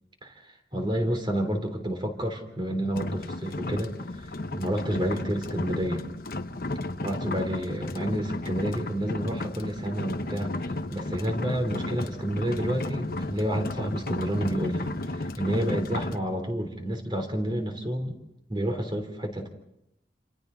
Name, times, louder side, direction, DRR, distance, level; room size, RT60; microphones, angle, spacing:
voice 1, 0.2-6.0 7.0-10.5 10.9-18.2 18.5-19.5, right 1 dB, 25° right, 4 dB, 3.5 m, -30 dB
sound 1, 2.9-16.2, left 2 dB, 55° left, 1.0 m, -33 dB
28.0 x 27.5 x 4.0 m, 0.82 s
head